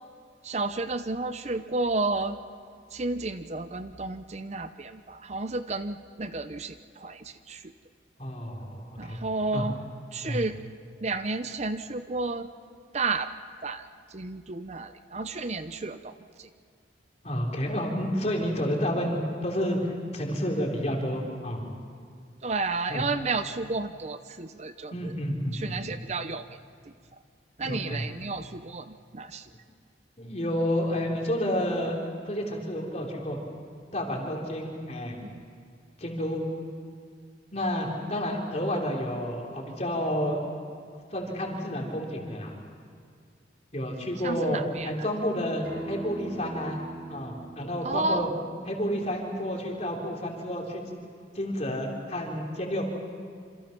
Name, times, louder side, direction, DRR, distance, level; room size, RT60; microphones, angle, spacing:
voice 1, 0.4-2.4 2.9-7.7 9.0-9.8 10.1-10.6 11.0-12.5 12.9-13.3 13.6-16.5 22.4-25.1 25.5-26.5 27.6-29.5 35.2-35.4 44.2-44.9 47.8-48.3, right 3 dB, 35° right, 10 dB, 0.6 m, -32 dB
voice 2, 8.2-9.2 9.5-9.7 10.3-10.4 17.2-21.6 22.9-23.0 24.9-25.7 27.6-28.0 30.2-32.0 32.3-33.4 33.9-35.2 36.0-36.5 37.5-40.4 41.1-42.5 43.7-46.8 47.1-48.3 48.7-50.8 51.3-52.8, equal, 35° left, 0 dB, 3.9 m, -30 dB
Acoustic guitar, 45.6-50.8, right 2 dB, 55° right, 3.4 m, -44 dB
27.0 x 27.0 x 6.0 m, 2.1 s
head